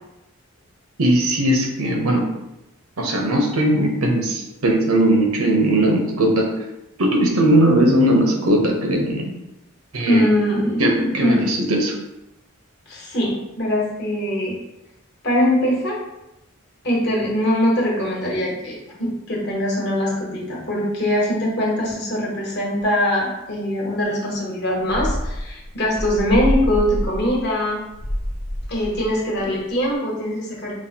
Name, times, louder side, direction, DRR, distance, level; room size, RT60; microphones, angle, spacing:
voice 1, 1.0-2.2 3.0-6.5 7.0-9.3 9.9-10.3 10.8-12.0, right 1 dB, 90° right, 2 dB, 0.8 m, -18 dB
voice 2, 10.1-11.4 12.9-14.5 15.2-16.0 16.8-27.8 28.7-30.7, equal, 50° left, -3 dB, 1.1 m, -22 dB
sound 1, 24.9-29.9, equal, 25° left, 0.4 m, -26 dB
5.3 x 2.1 x 2.8 m, 0.91 s
head